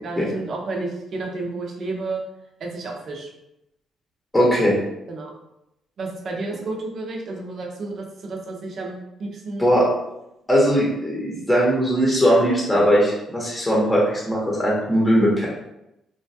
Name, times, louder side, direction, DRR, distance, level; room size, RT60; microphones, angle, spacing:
voice 1, 0.0-2.2 2.6-3.3 5.1-5.3 6.0-9.6, right 3 dB, 55° right, 0 dB, 0.6 m, -31 dB
voice 2, 4.3-4.7 9.6-9.9 10.5-15.5, equal, 10° left, -5 dB, 0.9 m, -19 dB
3.0 x 2.3 x 2.7 m, 0.87 s
cardioid pair, 90°, 0 cm